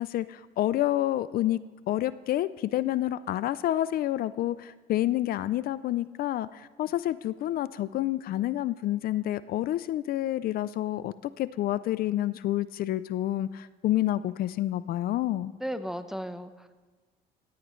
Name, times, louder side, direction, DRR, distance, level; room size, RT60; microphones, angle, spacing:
voice 1, 0.0-15.5, left 13 dB, 60° left, 16 dB, 0.4 m, -29 dB
voice 2, 15.6-16.7, equal, 5° right, 10 dB, 0.8 m, -35 dB
18.0 x 15.5 x 3.1 m, 1.4 s
cardioid pair, 110°, 17 cm